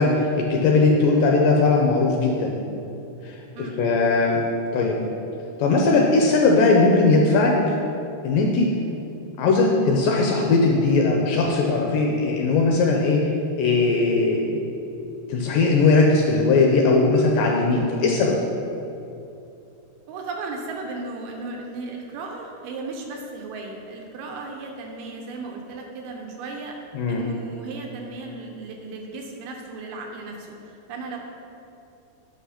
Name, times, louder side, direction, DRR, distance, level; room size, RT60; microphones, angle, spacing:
voice 1, 0.0-2.6 3.2-3.4 3.8-4.4 4.7-5.0 5.6-7.8 8.2-8.7 9.4-13.2 13.6-14.5 15.3-18.4 26.9-27.3, left 3 dB, 75° left, 0 dB, 2.1 m, -19 dB
voice 2, 20.1-26.8 27.1-31.2, right 3 dB, 80° right, 1 dB, 2.8 m, -35 dB
8.2 x 5.9 x 5.7 m, 2.8 s
omnidirectional pair, 4.6 m